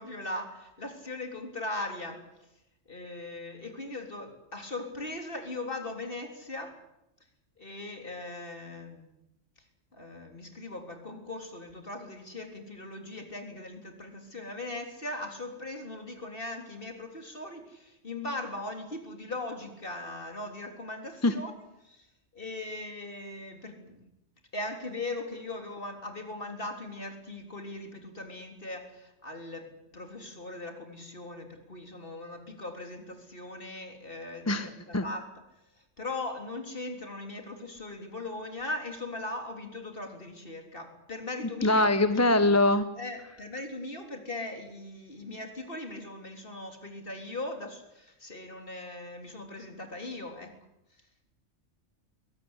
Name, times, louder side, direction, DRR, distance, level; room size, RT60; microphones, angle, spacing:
voice 1, 0.0-2.3 2.9-6.8 7.6-9.1 9.9-22.1 22.3-24.1 24.5-35.4 35.7-42.3 43.0-50.5, left 2 dB, 45° left, 4 dB, 3.8 m, -39 dB
voice 2, 41.6-42.9, left 2 dB, 15° left, 11 dB, 0.9 m, -22 dB
22.5 x 17.5 x 9.8 m, 0.86 s
omnidirectional pair, 1.3 m